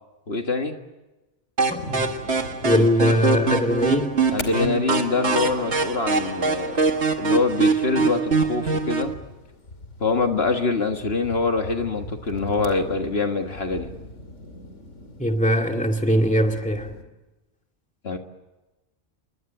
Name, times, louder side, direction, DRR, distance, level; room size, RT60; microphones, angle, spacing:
voice 1, 0.3-0.8 2.7-2.9 4.3-6.8 7.2-9.1 10.0-13.9 18.0-18.2, left 4 dB, 55° left, 5 dB, 1.9 m, -24 dB
sound 1, 1.6-9.1, right 4 dB, 70° right, 2.1 m, -24 dB
voice 2, 1.7-2.1 2.6-4.1 15.2-16.9, equal, 5° left, 3 dB, 2.2 m, -21 dB
sound 2, 1.8-17.0, left 2 dB, 80° left, 3.0 m, -41 dB
27.5 x 22.5 x 9.1 m, 1.1 s
omnidirectional pair, 1.2 m